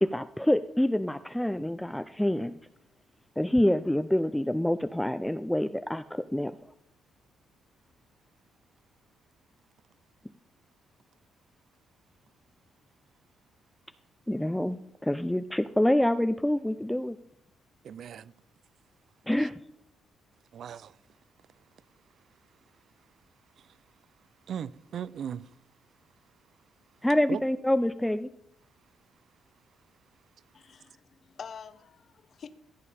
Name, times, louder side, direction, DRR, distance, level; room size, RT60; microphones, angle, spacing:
voice 1, 0.0-2.5 3.4-6.6 14.3-17.2 19.3-19.5 27.0-28.3, left 1 dB, 5° left, 0.4 m, -26 dB
voice 2, 17.8-18.3 19.4-19.5 20.5-21.0 23.6-23.8 24.5-25.5 27.3-27.4, right 8 dB, 60° right, 0.4 m, -38 dB
voice 3, 30.5-32.5, left 6 dB, 50° left, 0.8 m, -46 dB
15.5 x 7.2 x 4.2 m
cardioid pair, 90°, 0 cm